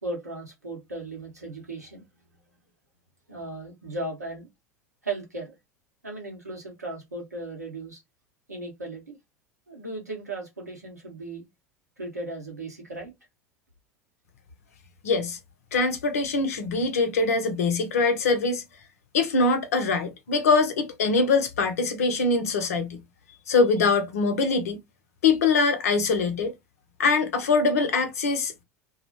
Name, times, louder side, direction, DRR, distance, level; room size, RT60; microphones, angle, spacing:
voice 1, 0.0-2.0 3.3-4.5 5.0-5.5 6.0-8.0 8.5-9.2 9.7-11.4 12.0-13.1, right 2 dB, 85° right, 0.9 m, -36 dB
voice 2, 15.0-15.4 15.7-18.6 19.1-23.0 23.5-24.8 25.2-26.5 27.0-28.5, left 4 dB, 70° left, 0.6 m, -23 dB
2.3 x 2.0 x 2.8 m
figure-of-eight pair, 75°, 9 cm